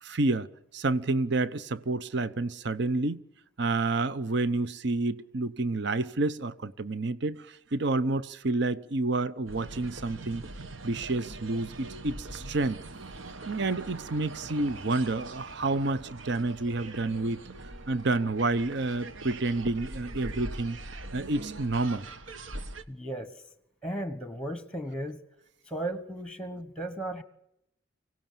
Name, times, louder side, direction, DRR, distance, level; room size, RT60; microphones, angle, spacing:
voice 1, 0.0-3.2 3.6-10.4 10.8-12.8 13.5-17.4 17.9-20.8 21.1-22.1, right 2 dB, 60° right, 0.8 m, -29 dB
sound 1, 9.5-22.8, right 2 dB, 80° right, 1.3 m, -42 dB
voice 2, 22.9-23.4 23.8-25.2 25.7-27.2, right 1 dB, 5° left, 1.3 m, -35 dB
25.0 x 17.0 x 7.4 m
head